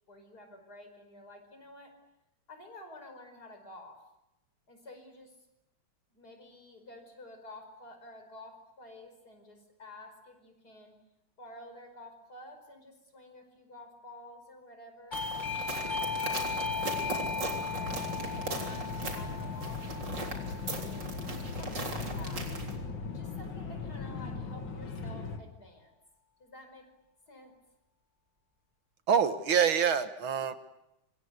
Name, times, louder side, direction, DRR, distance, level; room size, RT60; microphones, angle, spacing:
voice 1, 0.1-2.0 2.5-4.0 4.7-5.4 6.1-11.0 11.4-18.0 18.3-21.3 21.6-22.7 23.1-25.9 26.4-26.9 27.3-27.6, left 1 dB, 45° left, 6 dB, 5.7 m, -51 dB
sound 1, 15.1-25.4, left 4 dB, 65° left, 2.9 m, -39 dB
Doorbell, 15.1-21.6, left 4 dB, 20° left, 4.1 m, -37 dB
sound 2, 15.1-22.8, right 2 dB, 55° right, 4.3 m, -39 dB
voice 2, 29.1-30.5, right 7 dB, 75° right, 10 dB, 2.2 m, -26 dB
26.5 x 25.0 x 8.3 m, 0.87 s
omnidirectional pair, 2.3 m